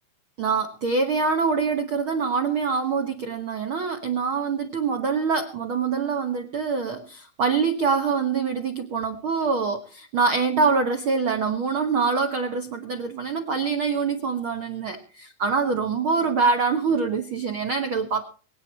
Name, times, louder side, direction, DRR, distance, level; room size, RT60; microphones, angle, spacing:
voice 1, 0.4-15.0 15.4-18.2, right 5 dB, 75° right, 6 dB, 1.1 m, -24 dB
24.5 x 9.0 x 4.4 m, 0.41 s
omnidirectional pair, 4.2 m